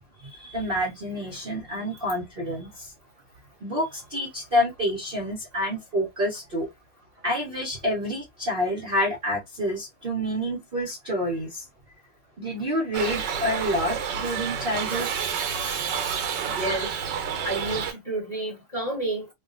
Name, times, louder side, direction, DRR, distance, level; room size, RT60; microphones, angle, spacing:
voice 1, 0.2-2.9 3.6-6.7 7.2-11.6 12.4-15.1, equal, 40° right, 0.8 m, -28 dB
Shout / Livestock farm animals working animals, 12.9-17.9, right 7 dB, 65° right, 1.3 m, -29 dB
voice 2, 16.4-16.9 17.4-19.3, right 2 dB, 20° left, 1.4 m, -30 dB
3.5 x 2.4 x 2.4 m
omnidirectional pair, 2.3 m